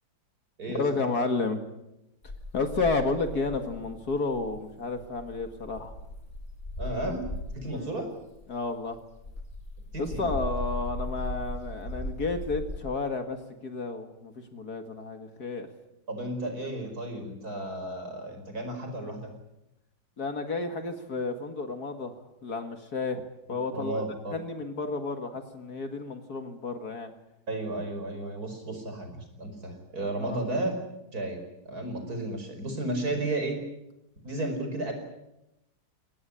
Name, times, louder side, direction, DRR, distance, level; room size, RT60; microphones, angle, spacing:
voice 1, 0.7-1.6 2.5-6.0 7.7-7.9 8.5-9.0 10.0-15.7 16.6-16.7 20.2-22.1 22.4-23.2 23.5-24.0 24.3-27.1 30.2-30.4, left 3 dB, 50° left, 7 dB, 2.3 m, -31 dB
sound 1, 2.2-7.7 8.2-12.8, left 1 dB, 35° left, 8.1 m, -38 dB
voice 2, 6.8-7.2 7.5-8.1 9.9-10.3 16.1-19.3 23.7-24.3 27.5-30.7 31.1-31.4 31.7-33.6 34.2-34.9, right 2 dB, 45° right, 5 dB, 5.5 m, -33 dB
22.0 x 18.5 x 9.9 m, 0.90 s
omnidirectional pair, 2.2 m